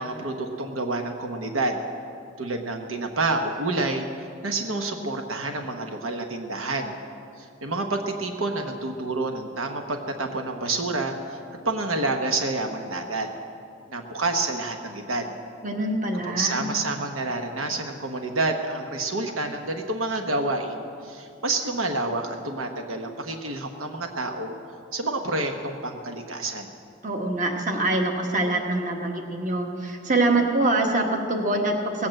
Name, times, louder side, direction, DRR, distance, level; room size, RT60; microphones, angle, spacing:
voice 1, 0.0-1.8 2.4-7.0 7.4-11.4 11.6-13.3 13.9-15.3 16.2-24.6 24.9-26.7, right 2 dB, 75° right, 4 dB, 1.0 m, -28 dB
voice 2, 15.6-16.7 27.0-32.1, right 2 dB, 35° right, 3 dB, 1.3 m, -24 dB
18.0 x 8.6 x 7.6 m, 2.4 s
head